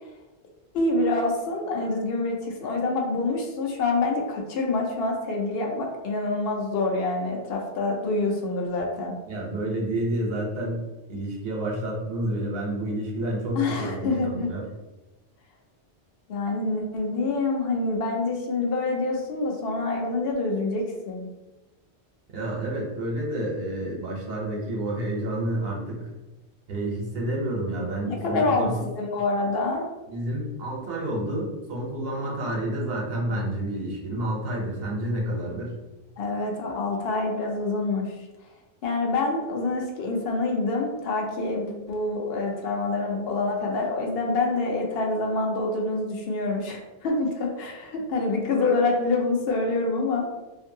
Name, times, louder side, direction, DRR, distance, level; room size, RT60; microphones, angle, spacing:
voice 1, 0.7-9.2 13.5-14.5 16.3-21.3 28.1-29.9 36.2-38.1 38.8-50.3, left 3 dB, 65° left, 1 dB, 0.7 m, -26 dB
voice 2, 9.3-10.8 11.1-14.6 22.3-26.0 26.7-28.8 30.1-35.7, right 1 dB, 65° right, -2 dB, 0.9 m, -29 dB
2.6 x 2.5 x 2.6 m, 1.1 s
omnidirectional pair, 1.1 m